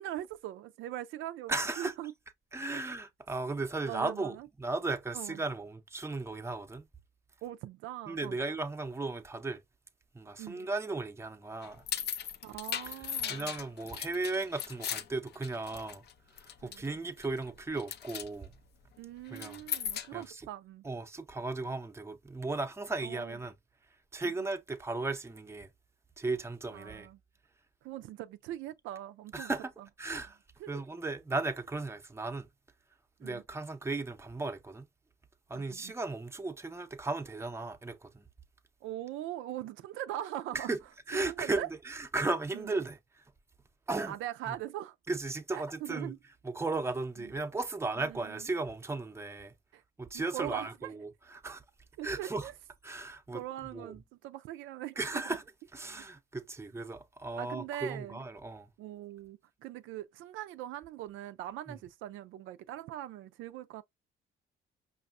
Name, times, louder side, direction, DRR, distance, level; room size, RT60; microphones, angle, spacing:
voice 1, 0.0-2.1 3.9-4.5 5.1-5.4 7.4-8.4 10.4-10.7 12.4-13.5 16.6-17.0 19.0-20.8 23.0-23.4 24.2-24.3 26.7-27.2 27.8-29.9 30.6-30.8 33.2-33.4 35.5-35.9 38.8-40.8 41.3-41.7 42.5-42.7 44.1-45.0 45.5-46.2 47.2-47.3 48.0-48.5 49.7-49.8 50.1-50.9 52.0-52.5 53.3-55.4 57.4-58.2 58.8-63.8, right 13 dB, 90° right, 0.4 m, -41 dB
voice 2, 1.5-1.9 2.5-6.9 8.1-9.6 10.1-11.8 12.9-13.0 13.3-16.0 16.6-18.6 19.3-19.6 20.1-20.4 20.8-23.5 24.1-25.7 26.2-27.1 29.3-29.7 30.0-30.4 30.7-32.5 33.2-34.9 35.5-38.2 40.5-40.8 41.1-43.0 43.9-44.1 44.5-44.6 45.1-46.1 46.4-49.5 50.0-51.6 52.0-52.5 52.8-53.9 55.0-55.4 55.7-58.7 61.7-61.8, right 3 dB, 15° right, 0.6 m, -36 dB
sound 1, 11.6-16.1 16.4-16.9 17.2-17.5 17.8-18.3 19.3-20.2, left 9 dB, 55° left, 0.5 m, -37 dB
5.3 x 2.5 x 2.4 m
cardioid pair, 90°, 20 cm